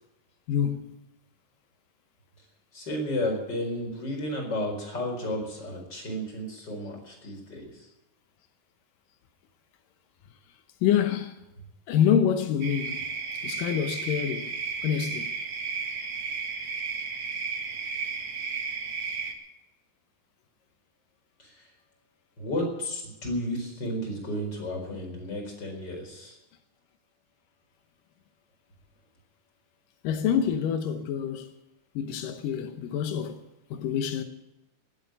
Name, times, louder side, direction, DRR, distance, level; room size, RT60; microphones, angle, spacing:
voice 1, 0.5-0.9 10.8-11.3 11.9-13.0 13.4-14.5 14.8-15.3 30.0-31.5 32.0-33.4 33.7-34.2, left 8 dB, 90° left, 2.7 m, -26 dB
voice 2, 2.7-7.9 21.4-21.7 22.4-26.4, left 1 dB, 30° left, 5.0 m, -33 dB
sound 1, 12.6-19.3, right 5 dB, 50° right, 2.1 m, -33 dB
20.0 x 8.1 x 8.9 m
omnidirectional pair, 3.8 m